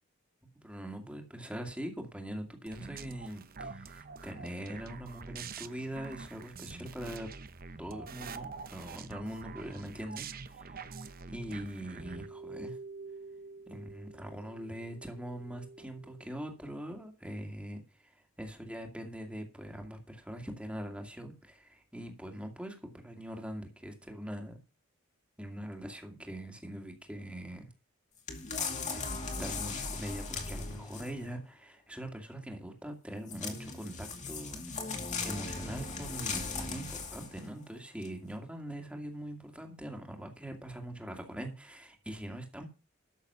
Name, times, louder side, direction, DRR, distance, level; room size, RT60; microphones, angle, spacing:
voice 1, 0.6-7.3 7.8-12.8 13.7-24.6 25.4-27.7 28.9-29.0 29.4-34.6 35.2-42.7, right 1 dB, 5° right, 3 dB, 2.4 m, -42 dB
sound 1, 2.7-12.3, right 5 dB, 45° right, 0.9 m, -46 dB
sound 2, 10.9-16.6, right 3 dB, 70° right, 1.1 m, -49 dB
sound 3, 28.3-31.3 33.3-37.5 38.0-38.1, left 4 dB, 35° left, 2.4 m, -38 dB
13.0 x 6.9 x 5.6 m, 0.31 s
head